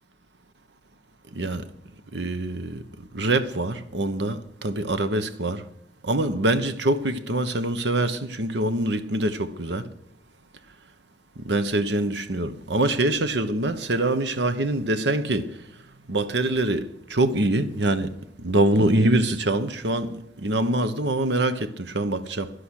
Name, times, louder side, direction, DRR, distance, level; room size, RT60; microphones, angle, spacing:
voice 1, 1.3-1.6 2.1-2.8 3.1-5.6 6.0-9.9 11.4-15.6 16.1-18.1 18.4-22.5, right 2 dB, 75° right, 1.1 m, -24 dB
11.5 x 11.5 x 6.5 m
head